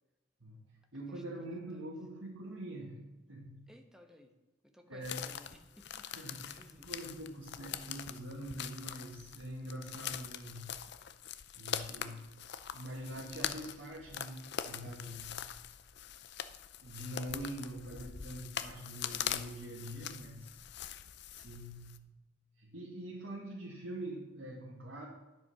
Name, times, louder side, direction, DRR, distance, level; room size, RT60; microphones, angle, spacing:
voice 1, 0.4-3.7 4.9-5.3 6.0-10.8 11.6-12.4 12.7-15.5 16.8-20.6 21.3-22.1 22.6-25.1, right 1 dB, 80° right, -4 dB, 1.9 m, -44 dB
voice 2, 1.1-1.8 3.7-4.3 4.6-6.9, equal, 5° right, 4 dB, 1.1 m, -59 dB
sound 1, 5.0-22.0, left 9 dB, 60° left, 0.6 m, -43 dB
11.0 x 7.7 x 5.7 m, 1.1 s
head